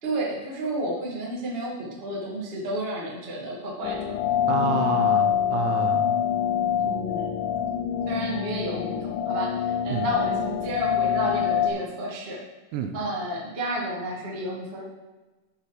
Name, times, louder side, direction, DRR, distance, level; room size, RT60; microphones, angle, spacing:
voice 1, 0.0-4.1 6.8-7.3 8.0-12.4 12.9-14.8, right 1 dB, 60° right, -4 dB, 0.6 m, -31 dB
sound 1, 3.8-11.7, left 9 dB, 80° left, 3.0 m, -25 dB
voice 2, 4.5-6.2 9.9-10.1 12.7-13.0, right 8 dB, 80° right, 5 dB, 2.9 m, -29 dB
10.5 x 6.2 x 5.0 m, 1.1 s
omnidirectional pair, 5.5 m